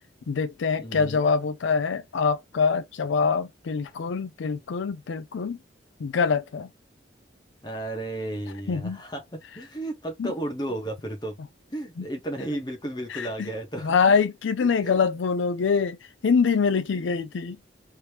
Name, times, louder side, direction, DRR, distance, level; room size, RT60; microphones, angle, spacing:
voice 1, 0.3-5.6 6.0-6.7 8.7-9.0 10.2-10.3 13.1-13.5 13.8-16.0 16.2-17.6, left 5 dB, 80° left, 0.4 m, -24 dB
voice 2, 0.8-1.2 7.6-11.4 11.7-14.1 14.8-15.0 16.9-17.0, right 1 dB, 20° left, 1.1 m, -33 dB
3.3 x 2.9 x 2.9 m
head